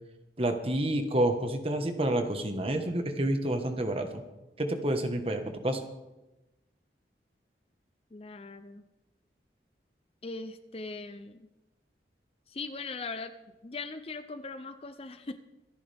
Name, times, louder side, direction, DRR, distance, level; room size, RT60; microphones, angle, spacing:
voice 1, 0.4-4.2 4.6-5.8, right 1 dB, 35° right, 6 dB, 1.4 m, -29 dB
voice 2, 8.1-8.8 10.2-11.5 12.5-13.3 13.6-15.4, left 3 dB, 35° left, 10 dB, 0.6 m, -40 dB
25.5 x 10.0 x 3.5 m, 1.0 s
head